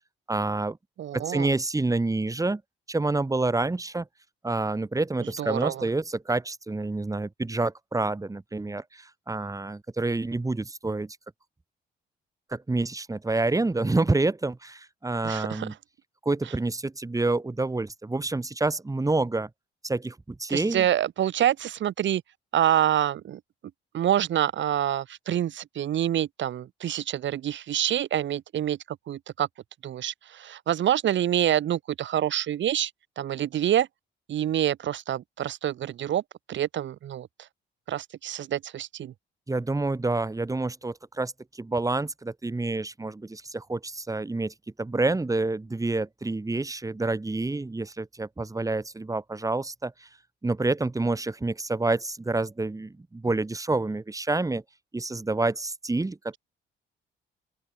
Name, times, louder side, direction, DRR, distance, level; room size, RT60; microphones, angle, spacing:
voice 1, 0.3-0.8 1.1-2.6 2.9-4.1 4.4-11.2 12.5-15.7 16.2-19.5 19.8-20.9 39.5-50.1 50.4-54.6 54.9-56.4, right 2 dB, 15° right, 2.4 m, -28 dB
voice 2, 1.0-1.5 5.4-5.9 15.2-15.7 20.5-22.2 22.5-23.4 23.9-29.5 29.8-32.9 33.2-33.9 34.3-36.2 36.5-37.3 37.9-39.1, right 11 dB, 70° right, 4.1 m, -26 dB
open air
cardioid pair, 90°, 20 cm